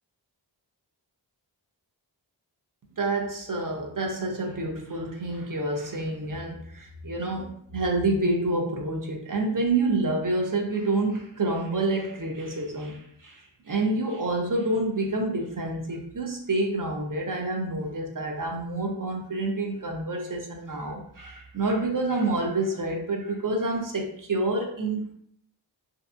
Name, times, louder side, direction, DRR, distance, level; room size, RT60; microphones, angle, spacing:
voice 1, 3.0-25.1, right 2 dB, 50° right, 1 dB, 0.5 m, -28 dB
2.6 x 2.2 x 2.5 m, 0.68 s
wide cardioid pair, 45°, 44 cm